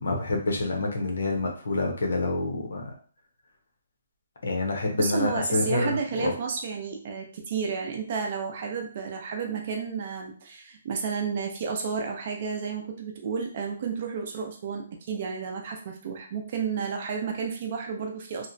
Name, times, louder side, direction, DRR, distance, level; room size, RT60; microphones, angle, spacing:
voice 1, 0.0-2.9 4.4-6.3, left 2 dB, 75° left, 2 dB, 0.8 m, -27 dB
voice 2, 5.0-18.5, right 5 dB, 30° right, 2 dB, 0.4 m, -31 dB
2.9 x 2.1 x 2.6 m, 0.42 s
hypercardioid pair, 180°, 0 cm